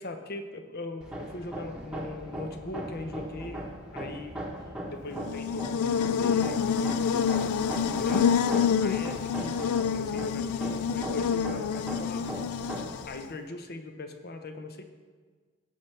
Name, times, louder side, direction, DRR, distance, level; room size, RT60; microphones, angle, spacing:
voice 1, 0.0-4.4 4.9-12.5 13.0-14.8, left 2 dB, 45° left, 6 dB, 0.8 m, -41 dB
Hammer, 1.0-13.1, right 1 dB, 5° right, 1.1 m, -39 dB
Buzz, 5.2-13.3, left 7 dB, 75° left, 0.4 m, -27 dB
17.0 x 5.7 x 3.3 m, 1.5 s
head